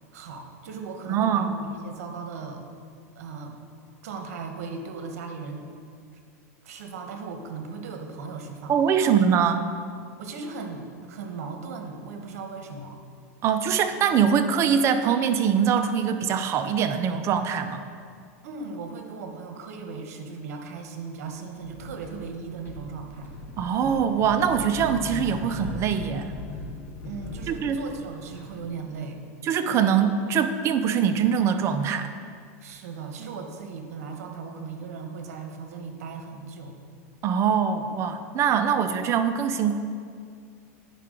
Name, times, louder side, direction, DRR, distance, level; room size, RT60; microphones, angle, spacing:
voice 1, 0.1-2.7 3.1-3.6 4.0-5.7 6.6-8.7 9.0-9.1 10.2-13.0 18.4-23.3 27.0-29.2 32.6-36.8, right 4 dB, 75° right, 5 dB, 1.0 m, -37 dB
voice 2, 1.1-1.5 8.7-9.6 13.4-17.8 23.6-26.3 27.5-27.8 29.4-32.1 37.2-39.8, right 7 dB, 35° right, 9 dB, 0.5 m, -23 dB
sound 1, 21.6-22.3 22.6-28.7, left 2 dB, 30° left, 1.6 m, -38 dB
9.2 x 5.6 x 3.8 m, 2.2 s
supercardioid pair, 130°, 8 cm